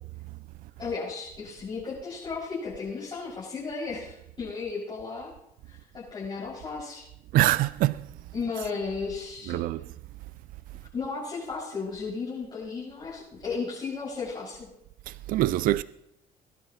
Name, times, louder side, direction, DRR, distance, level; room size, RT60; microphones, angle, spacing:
voice 1, 0.8-5.3 5.7-7.1 8.3-9.6 10.9-14.7, left 4 dB, 30° left, 6.4 m, -34 dB
voice 2, 7.3-8.1 9.5-9.9 15.1-15.8, right 15 dB, 65° right, 0.4 m, -24 dB
21.5 x 11.5 x 3.1 m
cardioid pair, 120°, 16 cm